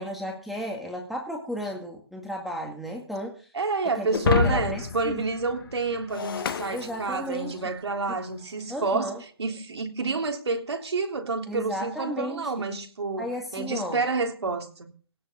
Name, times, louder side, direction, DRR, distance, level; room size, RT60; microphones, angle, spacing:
voice 1, 0.0-3.5 4.0-4.1 4.4-5.2 6.7-7.6 8.1-8.2 8.7-9.2 11.5-12.6 13.2-14.0, equal, ahead, 2.0 m, -34 dB
voice 2, 3.5-14.9, right 3 dB, 85° right, 3.5 m, -29 dB
Shatter, 4.1-7.6, left 6 dB, 55° left, 1.8 m, -29 dB
17.5 x 6.4 x 9.4 m
hypercardioid pair, 155°, 14 cm